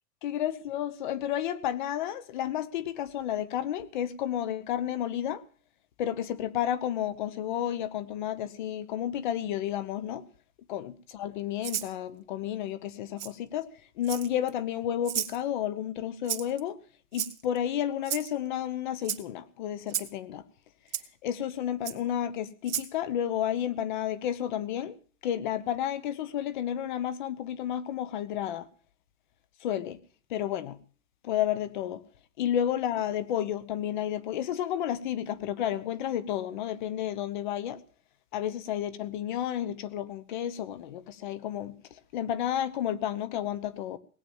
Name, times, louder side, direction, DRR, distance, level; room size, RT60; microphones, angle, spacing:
voice 1, 0.2-5.4 6.0-10.3 10.7-13.7 14.0-16.8 17.1-20.4 21.2-25.0 25.2-28.7 29.6-30.0 30.3-30.8 31.2-32.0 32.4-37.8 38.3-44.0, left 10 dB, 35° left, 1.1 m, -31 dB
Rattle (instrument), 11.6-11.9 13.2-13.3 14.0-14.5 15.0-15.4 16.3-16.6 17.1-17.6 18.0-18.3 19.0-19.2 19.9-20.1 20.9-21.0 21.8-22.0 22.6-22.9, right 10 dB, 85° right, 2.2 m, -32 dB
18.5 x 9.2 x 7.2 m
supercardioid pair, 175°, 41 cm